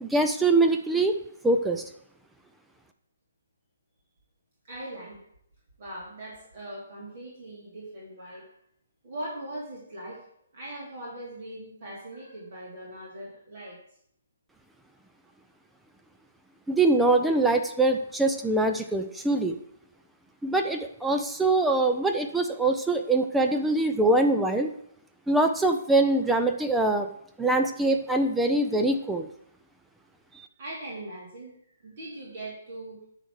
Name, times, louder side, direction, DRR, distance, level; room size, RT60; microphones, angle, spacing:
voice 1, 0.0-1.2 1.4-1.8 16.7-19.6 20.4-24.7 25.3-27.1 27.4-29.3 30.3-30.5, right 2 dB, 5° right, 5 dB, 0.5 m, -23 dB
voice 2, 4.6-5.2 5.8-8.5 9.0-10.3 10.5-13.8 30.6-33.0, right 1 dB, 50° right, -5 dB, 3.1 m, -40 dB
9.9 x 4.1 x 6.3 m, 0.70 s
figure-of-eight pair, 130°, 0 cm